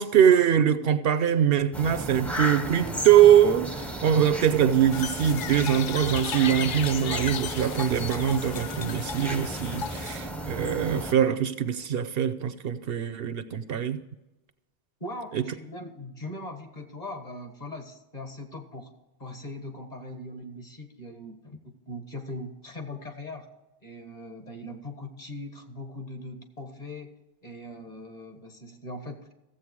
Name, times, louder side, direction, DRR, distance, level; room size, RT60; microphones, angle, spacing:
voice 1, 0.0-14.0 15.3-15.4, right 9 dB, 65° right, 0.8 m, -22 dB
sound 1, 1.7-11.1, equal, ahead, 0.7 m, -35 dB
sound 2, 4.9-10.2, left 8 dB, 60° left, 0.7 m, -35 dB
voice 2, 15.0-18.9 19.2-21.6 21.9-23.5 23.8-29.3, left 1 dB, 40° left, 1.6 m, -40 dB
15.0 x 7.8 x 4.7 m
omnidirectional pair, 1.1 m